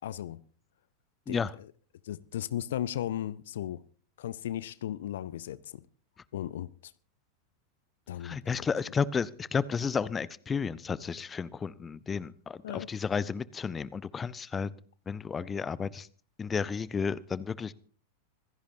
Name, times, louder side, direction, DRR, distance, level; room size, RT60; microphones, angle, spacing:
voice 1, 0.0-0.4 1.3-1.4 2.0-3.8 4.2-5.9 6.3-6.9 8.1-8.7 12.6-12.9, left 11 dB, 60° left, 0.6 m, -36 dB
voice 2, 8.2-14.7 15.1-16.1 16.4-17.7, left 6 dB, 20° left, 0.7 m, -32 dB
26.0 x 16.5 x 2.7 m
figure-of-eight pair, 90°, 0 cm